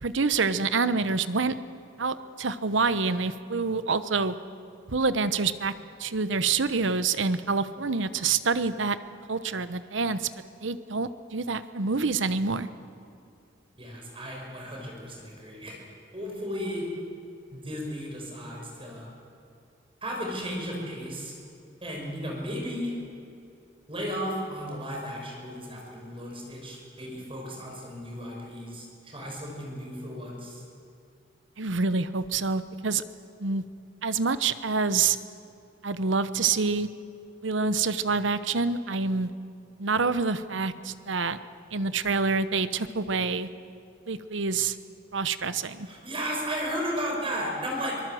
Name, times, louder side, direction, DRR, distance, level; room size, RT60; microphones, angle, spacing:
voice 1, 0.0-1.5 2.0-4.3 4.9-5.7 6.0-9.0 9.3-10.3 10.6-12.7 31.6-33.0 33.4-33.6 34.0-35.2 35.8-36.9 37.4-39.3 39.8-41.4 41.7-43.5 44.1-44.8 45.1-45.9, right 4 dB, 75° right, 13 dB, 0.9 m, -27 dB
voice 2, 13.8-15.8 16.1-16.9 17.5-19.1 20.0-21.3 21.8-22.9 23.9-30.6 45.8-48.0, equal, 30° right, -1 dB, 5.9 m, -34 dB
24.5 x 19.0 x 7.7 m, 2.5 s
head